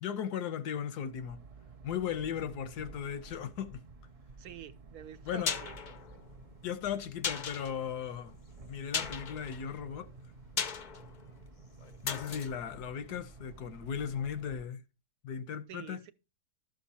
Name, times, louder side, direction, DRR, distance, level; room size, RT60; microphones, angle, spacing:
voice 1, 0.0-1.4 1.8-3.8 5.2-5.5 6.6-8.3 8.7-10.1 12.0-14.8 15.2-16.0, left 8 dB, 85° left, 1.3 m, -37 dB
sound 1, 1.1-14.7, right 3 dB, 55° right, 0.4 m, -52 dB
voice 2, 4.4-6.2 15.7-16.1, right 10 dB, 75° right, 1.1 m, -48 dB
sound 2, 5.0-13.9 14.2-14.3, left 6 dB, 55° left, 0.5 m, -39 dB
12.0 x 6.5 x 4.1 m
omnidirectional pair, 1.7 m